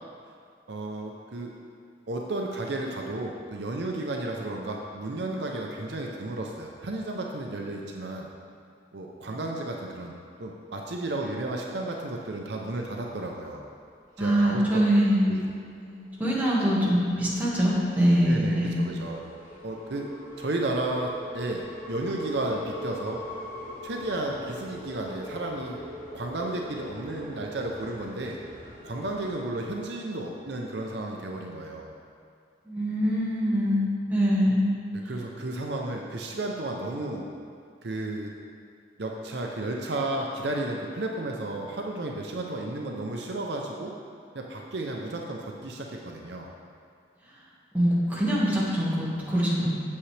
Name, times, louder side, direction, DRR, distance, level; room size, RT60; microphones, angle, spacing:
voice 1, 0.7-1.5 2.1-8.3 8.9-13.6 14.2-14.8 15.2-15.4 18.2-19.2 19.6-20.1 20.4-23.2 23.8-25.8 26.1-28.4 28.8-31.9 35.1-37.2 37.8-38.3 39.0-43.9 44.3-46.5, right 2 dB, 65° right, 0 dB, 0.6 m, -33 dB
sound 1, 13.9-14.2 14.6-29.4, left 1 dB, 45° left, 1.3 m, -43 dB
voice 2, 14.2-15.3 15.8-18.8 32.6-34.7 47.3-47.4 47.7-49.7, equal, 10° right, -7 dB, 1.7 m, -24 dB
8.5 x 7.5 x 3.3 m, 2.3 s
head